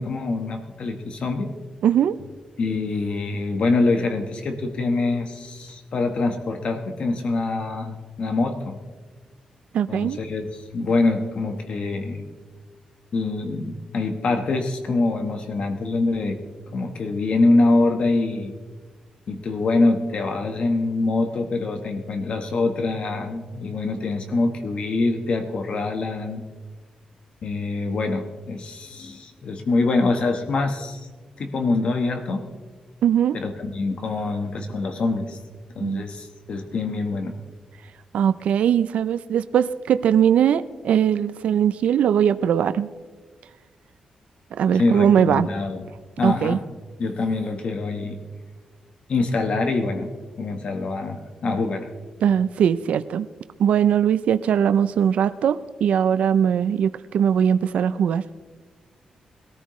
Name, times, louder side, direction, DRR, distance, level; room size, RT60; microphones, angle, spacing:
voice 1, 0.0-1.5 2.6-8.8 9.9-12.3 13.1-16.4 16.7-18.5 19.3-26.4 27.4-31.1 31.4-32.4 33.3-35.4 35.7-37.4 44.7-45.9 46.2-46.6 47.0-48.2 49.1-50.1 50.4-51.9, left 3 dB, 55° left, 6 dB, 1.3 m, -24 dB
voice 2, 1.8-2.2 9.7-10.2 33.0-33.4 35.8-36.1 38.1-42.9 44.5-45.5 46.2-46.6 52.2-53.3 53.6-58.4, right 8 dB, 80° right, 12 dB, 0.4 m, -20 dB
21.5 x 14.0 x 3.1 m, 1.4 s
wide cardioid pair, 125°, 2 cm